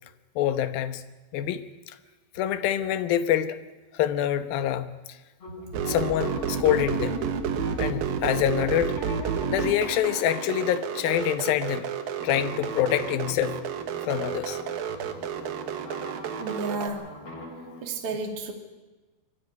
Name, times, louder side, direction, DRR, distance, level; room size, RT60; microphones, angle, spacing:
voice 1, 0.4-1.0 1.3-2.0 2.4-3.6 3.9-4.9 5.8-7.2 7.8-9.0 9.5-11.9 12.2-13.6 14.0-14.6, left 11 dB, 70° left, 11 dB, 2.6 m, -26 dB
sound 1, 5.4-11.4 12.1-17.8, left 2 dB, 35° left, 4.5 m, -43 dB
sound 2, 5.7-16.9, right 8 dB, 65° right, 3.0 m, -30 dB
voice 2, 16.4-17.1 17.8-18.5, right 3 dB, 40° right, 3 dB, 3.1 m, -32 dB
24.0 x 14.5 x 9.3 m, 1.2 s
omnidirectional pair, 4.8 m